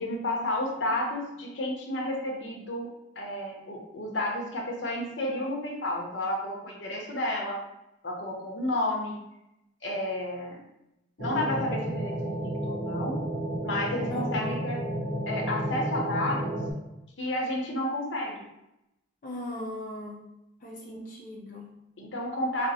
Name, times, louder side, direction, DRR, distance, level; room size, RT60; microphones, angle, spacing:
voice 1, 0.0-2.9 3.2-7.6 8.0-9.2 9.8-10.6 11.2-13.2 13.6-14.8 15.3-16.6 17.2-18.4 20.9-21.0 22.0-22.7, left 1 dB, 75° left, 0 dB, 0.8 m, -31 dB
sound 1, 11.2-16.7, right 1 dB, 80° right, 1.1 m, -32 dB
voice 2, 14.1-14.6 19.2-20.3 20.6-21.8, left 1 dB, 45° left, -3 dB, 0.5 m, -38 dB
5.0 x 2.0 x 2.7 m, 0.87 s
head